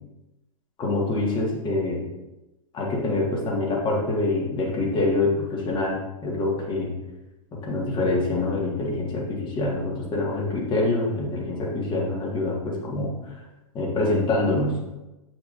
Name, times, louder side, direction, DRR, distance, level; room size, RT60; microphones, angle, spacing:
voice 1, 0.8-2.0 2.7-6.9 7.6-13.4 13.7-14.8, left 2 dB, 25° left, -1 dB, 1.9 m, -25 dB
7.7 x 6.1 x 2.7 m, 1.0 s
hypercardioid pair, 105°, 18 cm